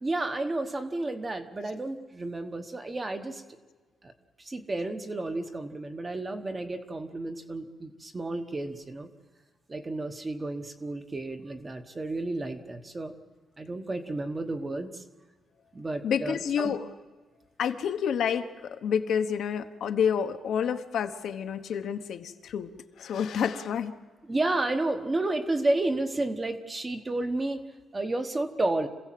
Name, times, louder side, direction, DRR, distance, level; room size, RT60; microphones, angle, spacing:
voice 1, 0.0-3.4 4.0-4.1 4.4-9.1 9.7-13.1 13.6-15.0 15.7-16.7 24.2-27.6 27.9-28.9, right 2 dB, 20° right, 7 dB, 1.1 m, -31 dB
voice 2, 16.0-16.8 17.6-22.7 23.0-23.9, left 7 dB, 60° left, 7 dB, 1.1 m, -29 dB
26.5 x 16.0 x 7.7 m, 1.4 s
wide cardioid pair, 175°, 0 cm